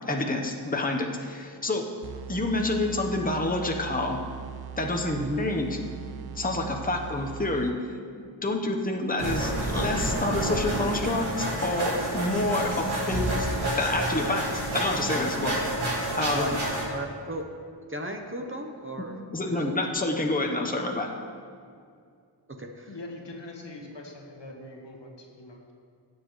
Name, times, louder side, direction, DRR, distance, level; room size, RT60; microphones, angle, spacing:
voice 1, 0.0-1.8 2.3-4.2 4.8-5.8 6.4-7.7 8.2-14.4 14.7-15.7 16.2-16.6 19.3-21.1, left 2 dB, 20° left, 2 dB, 0.9 m, -28 dB
sound 1, 2.0-8.1, right 8 dB, 55° right, 0.5 m, -40 dB
sound 2, 9.2-16.8, right 1 dB, 90° right, 2.0 m, -29 dB
voice 2, 16.3-17.4 17.9-19.2 19.5-19.7 22.6-23.0, equal, 25° right, 3 dB, 0.9 m, -35 dB
voice 3, 22.9-25.7, left 2 dB, 65° left, 1 dB, 1.5 m, -43 dB
16.0 x 7.4 x 3.2 m, 2.3 s
wide cardioid pair, 70°, 47 cm